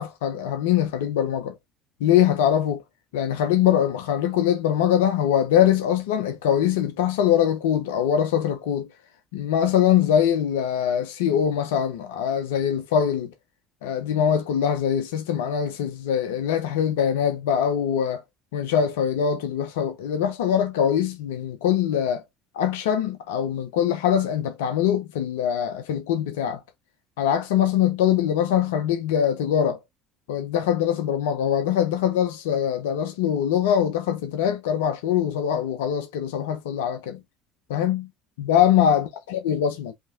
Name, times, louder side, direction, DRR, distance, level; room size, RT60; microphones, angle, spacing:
voice 1, 0.0-1.6 2.0-2.8 3.1-8.9 9.3-13.3 13.8-18.2 18.5-22.2 22.5-26.6 27.2-29.8 30.3-37.2 37.7-38.1 38.4-39.9, left 9 dB, 80° left, 0.7 m, -23 dB
5.3 x 2.9 x 2.3 m
hypercardioid pair, 70°, 0 cm